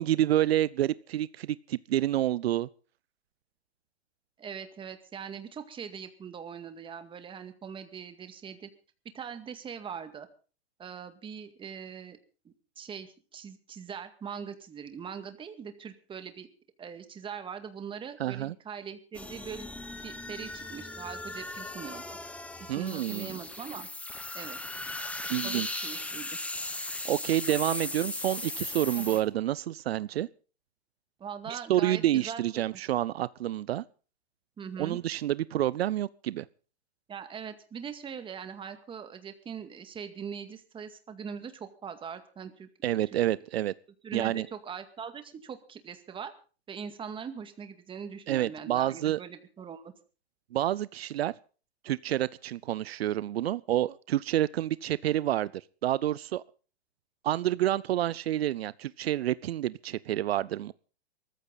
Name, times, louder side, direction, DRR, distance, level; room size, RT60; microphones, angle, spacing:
voice 1, 0.0-2.7 18.2-18.5 22.7-23.4 25.3-25.9 27.0-30.3 31.5-33.8 34.8-36.5 42.8-43.7 44.1-44.5 48.3-49.2 50.5-51.3 51.8-56.4 57.2-60.7, right 13 dB, 75° right, 20 dB, 0.7 m, -28 dB
voice 2, 4.4-8.7 9.1-10.3 10.8-12.2 12.4-16.5 16.8-19.7 20.0-22.2 22.6-23.9 24.3-24.6 25.4-26.3 29.0-29.2 31.2-32.7 34.6-35.0 37.1-42.7 43.1-43.2 44.0-46.3 46.7-49.9, right 7 dB, 15° right, 8 dB, 2.0 m, -41 dB
sound 1, 19.1-29.2, left 2 dB, 5° left, 1.1 m, -38 dB
21.5 x 14.5 x 4.1 m, 0.37 s
hypercardioid pair, 135°, 31 cm